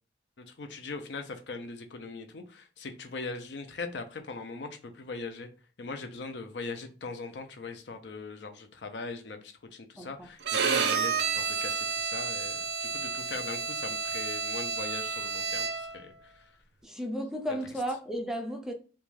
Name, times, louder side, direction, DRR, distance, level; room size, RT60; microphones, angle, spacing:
voice 1, 0.4-5.5 5.8-16.5, left 3 dB, 75° left, 0.5 m, -40 dB
Bowed string instrument, 10.4-16.0, right 5 dB, 70° right, 0.5 m, -30 dB
voice 2, 16.8-18.7, equal, 5° right, 0.3 m, -33 dB
2.5 x 2.2 x 3.1 m
head